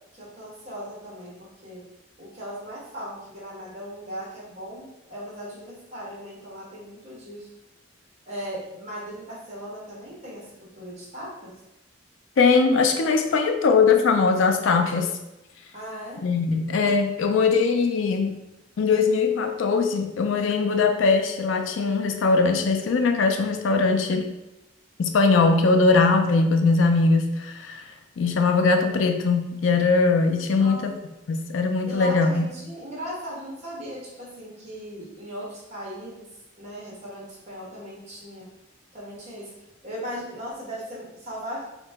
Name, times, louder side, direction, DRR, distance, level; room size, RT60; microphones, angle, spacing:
voice 1, 0.1-1.8 2.2-7.5 8.3-11.5 15.7-16.3 30.6-30.9 31.8-36.3 36.6-38.5 38.9-39.5 39.8-41.7, equal, 35° right, -6 dB, 1.2 m, -38 dB
voice 2, 12.4-15.1 16.2-18.3 18.8-24.3 25.0-27.9 28.2-31.0 31.3-32.5, left 4 dB, 85° left, 5 dB, 0.4 m, -21 dB
2.9 x 2.7 x 3.4 m, 0.92 s
head